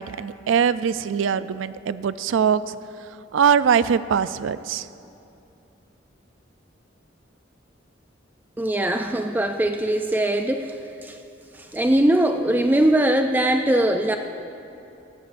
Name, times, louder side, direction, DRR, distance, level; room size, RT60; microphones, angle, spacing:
voice 1, 0.0-2.7 3.3-4.9, right 7 dB, 85° right, 15 dB, 0.4 m, -22 dB
voice 2, 8.6-10.8 11.0-11.2 11.7-14.2, right 1 dB, 10° right, 5 dB, 0.3 m, -21 dB
17.5 x 14.5 x 2.5 m, 2.7 s
head